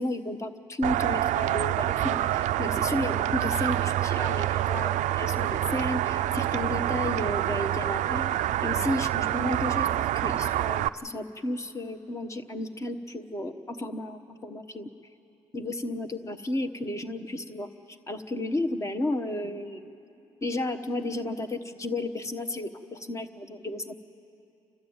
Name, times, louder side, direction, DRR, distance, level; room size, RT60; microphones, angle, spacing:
voice 1, 0.0-8.3 8.6-9.9 10.1-14.9 15.5-17.7 18.1-19.9 20.4-23.9, left 1 dB, 25° left, 8 dB, 1.1 m, -32 dB
sound 1, 0.8-10.9, right 13 dB, 75° right, 0.4 m, -27 dB
30.0 x 12.5 x 8.7 m, 2.8 s
cardioid pair, 115°, 12 cm